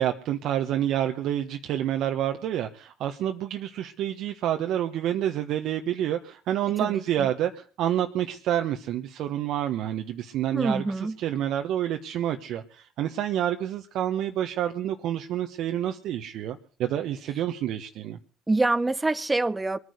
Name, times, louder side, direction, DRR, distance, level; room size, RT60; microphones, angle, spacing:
voice 1, 0.0-10.8 11.2-18.2, right 11 dB, 65° right, 1.3 m, -28 dB
voice 2, 6.8-7.3 10.5-11.2 18.5-19.8, right 2 dB, 15° right, 1.2 m, -26 dB
22.5 x 9.7 x 6.6 m
supercardioid pair, 75°, 0 cm